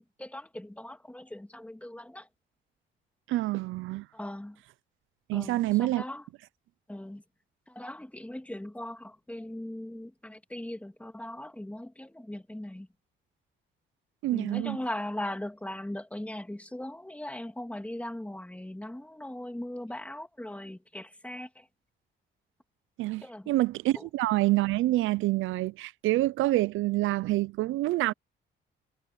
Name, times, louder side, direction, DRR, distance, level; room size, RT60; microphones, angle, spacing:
voice 1, 0.2-2.3 4.1-4.6 5.3-6.2 6.9-7.2 7.7-12.9 14.3-21.7 23.2-23.5 23.9-24.1, left 1 dB, 5° left, 2.9 m, -39 dB
voice 2, 3.3-4.1 5.3-6.0 14.2-14.8 23.0-28.1, right 17 dB, 85° right, 0.5 m, -27 dB
cardioid pair, 90°, 20 cm